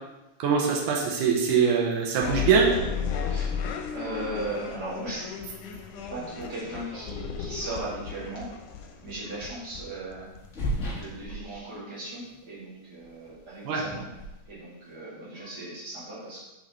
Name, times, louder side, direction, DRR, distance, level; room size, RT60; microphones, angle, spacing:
voice 1, 0.4-2.7 13.6-13.8, right 6 dB, 90° right, -1 dB, 2.5 m, -23 dB
sound 1, 2.2-10.8, left 7 dB, 85° left, 2.2 m, -34 dB
sound 2, 2.9-5.0 6.1-6.2 8.0-8.2 8.6-8.7 10.2-12.0 12.3-12.6 13.0-15.0, equal, 35° left, 1.3 m, -38 dB
voice 2, 3.2-5.3 6.1-8.6 9.0-10.3 10.9-14.1 14.5-16.5, right 2 dB, 35° right, -7 dB, 2.6 m, -37 dB
6.8 x 6.2 x 3.1 m, 1.0 s
omnidirectional pair, 3.5 m